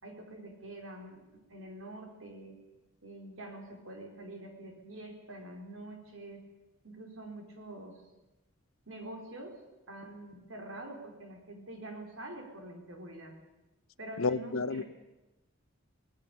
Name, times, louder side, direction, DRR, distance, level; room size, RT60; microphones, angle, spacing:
voice 1, 0.0-2.6 3.0-6.5 6.8-8.0 8.9-9.6 9.9-13.3 14.0-14.8, right 1 dB, 70° right, 2 dB, 4.6 m, -46 dB
voice 2, 14.2-14.8, left 4 dB, 80° left, 15 dB, 0.8 m, -30 dB
26.0 x 18.5 x 7.2 m, 1.0 s
head